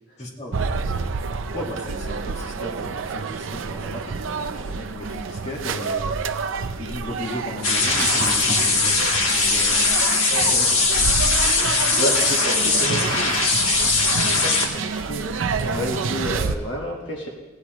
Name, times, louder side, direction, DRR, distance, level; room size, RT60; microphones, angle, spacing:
voice 1, 0.2-0.6 1.5-6.3 6.7-8.8 9.3-9.9, left 1 dB, 35° left, -2 dB, 1.5 m, -35 dB
sound 1, 0.5-16.6, right 5 dB, 70° right, 0.5 m, -29 dB
sound 2, 7.6-14.7, left 3 dB, 90° left, 1.7 m, -20 dB
Fill (with liquid), 8.1-11.8 12.2-12.3 12.6-13.2, right 2 dB, 55° right, 1.6 m, -38 dB
voice 2, 10.3-10.8 12.0-13.4 14.1-17.3, equal, 60° left, 0 dB, 1.3 m, -30 dB
16.0 x 9.4 x 3.0 m, 1.2 s
head